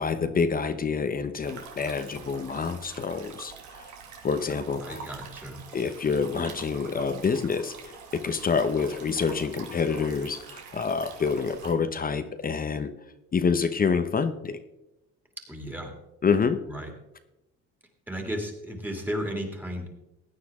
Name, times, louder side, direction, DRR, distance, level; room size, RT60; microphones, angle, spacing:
voice 1, 0.0-3.5 3.8-3.9 4.2-5.0 5.7-7.7 8.1-12.9 13.3-14.6 16.2-16.6, left 5 dB, 30° left, 10 dB, 0.9 m, -27 dB
sound 1, 1.4-11.7, right 6 dB, 75° right, 2.3 m, -45 dB
voice 2, 4.8-5.6 15.5-15.9 16.7-16.9 18.1-19.9, equal, 5° right, 3 dB, 2.7 m, -34 dB
16.0 x 9.6 x 3.7 m, 0.92 s
cardioid pair, 100°, 29 cm